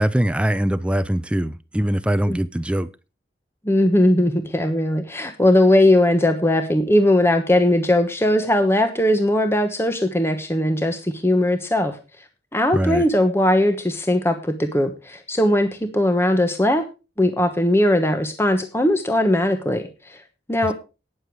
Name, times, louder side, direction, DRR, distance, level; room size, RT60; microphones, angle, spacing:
voice 1, 0.0-2.9 12.7-13.0, right 1 dB, 5° right, 0.5 m, -22 dB
voice 2, 3.6-12.0 12.5-16.8 17.2-20.2 20.5-20.8, left 1 dB, 15° left, 1.1 m, -19 dB
12.0 x 9.5 x 4.7 m
head